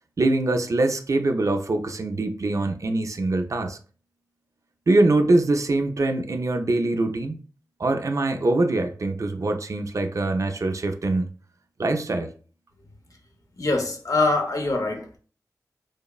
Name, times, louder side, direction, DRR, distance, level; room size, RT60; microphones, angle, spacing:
voice 1, 0.2-3.8 4.9-7.4 7.8-11.3 11.8-12.3, right 2 dB, 55° right, 0.4 m, -23 dB
voice 2, 13.6-15.2, left 2 dB, 55° left, 0.6 m, -24 dB
3.1 x 2.0 x 2.3 m
wide cardioid pair, 55°, 7 cm